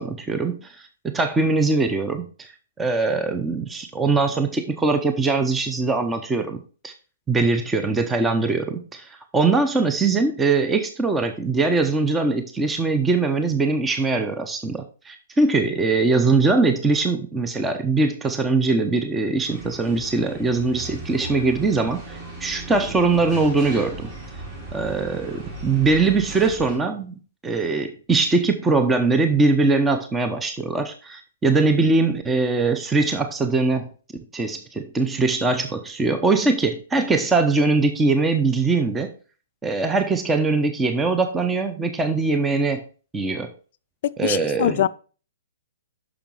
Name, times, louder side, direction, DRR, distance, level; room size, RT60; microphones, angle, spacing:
voice 1, 0.0-2.5 2.8-6.9 7.3-24.1 24.7-33.9 34.3-39.1 39.6-42.8 43.1-43.5 44.2-44.8, right 3 dB, 10° right, 0.7 m, -22 dB
sound 1, 19.4-26.8, right 2 dB, 30° right, 2.8 m, -37 dB
voice 2, 44.0-44.9, left 11 dB, 55° left, 0.3 m, -23 dB
6.2 x 5.1 x 4.6 m
hypercardioid pair, 130°, 0 cm